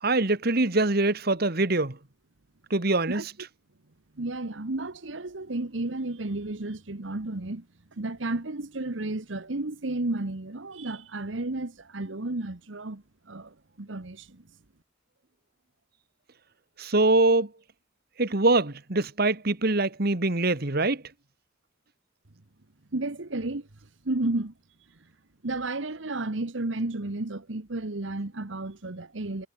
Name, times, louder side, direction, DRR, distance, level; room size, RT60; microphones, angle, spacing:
voice 1, 0.0-2.0 2.7-3.2 16.8-17.5 18.2-21.0, right 2 dB, 50° right, 1.7 m, -23 dB
voice 2, 4.1-7.7 7.9-14.4 22.9-23.7 24.0-24.5 25.4-29.5, right 2 dB, 70° right, 1.3 m, -32 dB
head